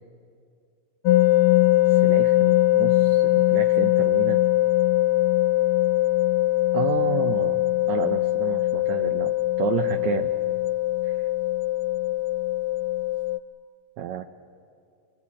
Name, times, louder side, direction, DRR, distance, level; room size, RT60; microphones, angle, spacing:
sound 1, 1.1-13.4, left 16 dB, 75° left, 2.3 m, -21 dB
voice 1, 1.9-4.4 6.7-10.3 11.0-11.2 14.0-14.2, right 9 dB, 90° right, 9 dB, 1.6 m, -31 dB
25.0 x 23.5 x 8.6 m, 2.4 s
omnidirectional pair, 4.1 m